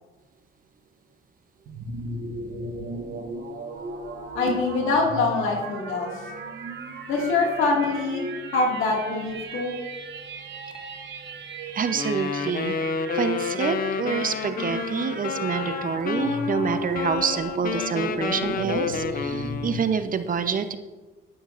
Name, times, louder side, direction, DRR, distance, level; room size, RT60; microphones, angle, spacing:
sound 1, 1.7-19.8, right 2 dB, 65° right, 1.3 m, -36 dB
voice 1, 4.3-6.1 7.1-9.7, left 3 dB, 90° left, -1 dB, 1.9 m, -24 dB
voice 2, 11.7-12.7 13.1-20.8, right 6 dB, 45° right, 10 dB, 0.7 m, -27 dB
Wind instrument woodwind instrument, 11.9-19.9, left 6 dB, 45° left, 0.5 m, -30 dB
11.0 x 9.0 x 2.5 m, 1.2 s
cardioid pair, 90°, 20 cm